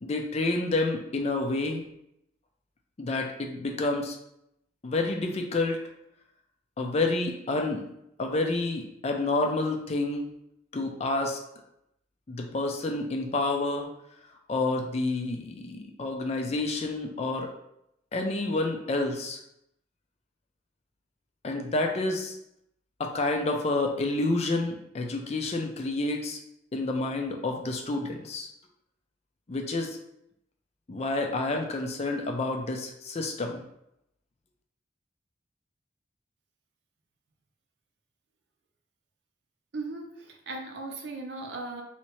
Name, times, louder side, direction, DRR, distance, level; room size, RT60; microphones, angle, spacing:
voice 1, 0.0-1.8 3.0-4.2 4.8-5.8 6.8-7.9 8.2-10.3 10.7-11.4 12.3-13.9 14.5-17.5 18.1-19.4 21.4-22.4 23.0-26.4 26.7-28.5 29.5-30.0 30.9-33.6, left 2 dB, 35° left, 3 dB, 0.4 m, -29 dB
voice 2, 39.7-41.8, right 3 dB, 65° right, 1 dB, 0.6 m, -37 dB
3.2 x 2.9 x 3.0 m, 0.78 s
head